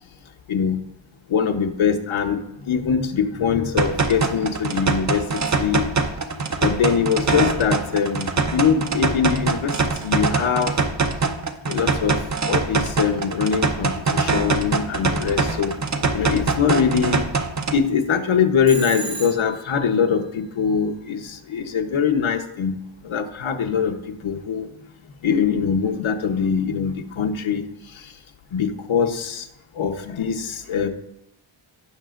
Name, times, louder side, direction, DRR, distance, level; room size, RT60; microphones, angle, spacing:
voice 1, 0.5-0.8 1.3-5.9 6.6-10.7 11.6-17.3 17.7-22.7 23.0-24.7 25.2-28.1 28.5-29.5 29.7-30.4 30.7-30.9, left 6 dB, 75° left, 5 dB, 1.0 m, -23 dB
sound 1, 3.8-17.8, right 4 dB, 35° right, 0.7 m, -23 dB
Telephone, 18.7-19.7, right 3 dB, 80° right, 2.0 m, -33 dB
17.0 x 6.1 x 2.5 m, 0.82 s
wide cardioid pair, 145°, 48 cm